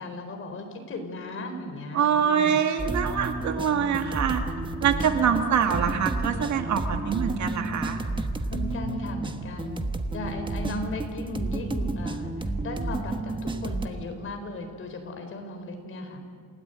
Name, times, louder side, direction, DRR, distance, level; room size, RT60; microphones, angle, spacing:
voice 1, 0.0-2.6 3.7-4.1 5.3-5.4 7.0-7.4 8.5-9.8 10.1-16.2, left 1 dB, 40° left, 5 dB, 4.2 m, -36 dB
voice 2, 1.9-4.4 4.8-8.0, right 7 dB, 60° right, 5 dB, 2.4 m, -24 dB
sound 1, 2.8-13.9, right 2 dB, 15° right, 1.2 m, -31 dB
28.5 x 17.5 x 9.2 m, 2.2 s
cardioid pair, 155°, 32 cm